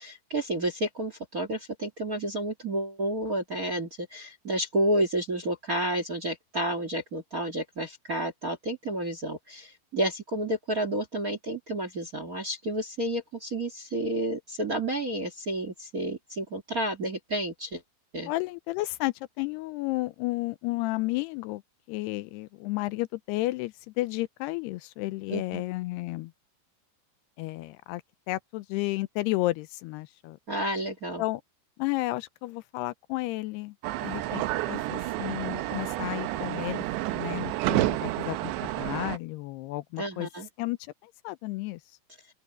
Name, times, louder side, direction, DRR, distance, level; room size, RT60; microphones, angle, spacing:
voice 1, 0.0-17.8 18.1-18.3 25.3-25.6 30.5-31.2 40.0-40.5, right 1 dB, 45° right, 1.1 m, -30 dB
voice 2, 18.3-21.6 21.9-26.3 27.4-28.0 28.3-30.4 31.2-31.4 31.8-33.7 34.0-36.8 37.1-40.3 40.6-40.8 41.0-41.8, left 19 dB, 80° left, 2.6 m, -32 dB
sound 1, 33.8-39.2, right 16 dB, 80° right, 3.1 m, -30 dB
open air
omnidirectional pair, 5.0 m